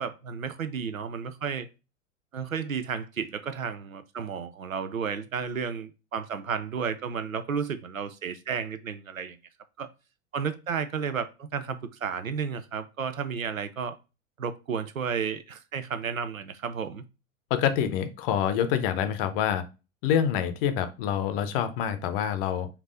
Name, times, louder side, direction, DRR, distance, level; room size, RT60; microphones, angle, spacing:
voice 1, 0.0-1.7 2.3-9.4 9.8-9.9 10.3-13.9 14.4-17.0, right 6 dB, 85° right, 0.6 m, -32 dB
voice 2, 17.5-19.6 20.0-22.7, left 9 dB, 45° left, 0.7 m, -26 dB
4.5 x 2.7 x 3.8 m
figure-of-eight pair, 85°, 40 cm